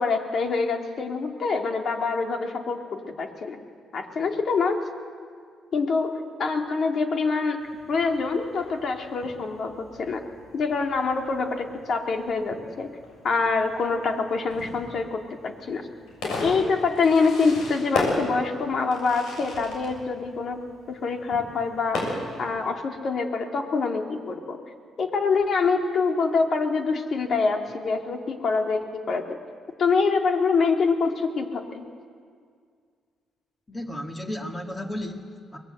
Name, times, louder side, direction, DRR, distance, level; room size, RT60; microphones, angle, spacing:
voice 1, 0.0-3.6 3.9-4.8 5.7-7.6 7.9-10.2 10.5-12.9 13.2-15.9 16.2-20.6 20.9-24.6 25.0-29.4 29.8-31.8, left 4 dB, 55° left, 3 dB, 2.5 m, -25 dB
Fireworks, 7.6-22.6, left 2 dB, 80° left, 6.6 m, -36 dB
voice 2, 33.7-35.6, left 1 dB, 20° left, 3 dB, 2.1 m, -34 dB
23.0 x 20.0 x 7.9 m, 2.1 s
cardioid pair, 90°, 0 cm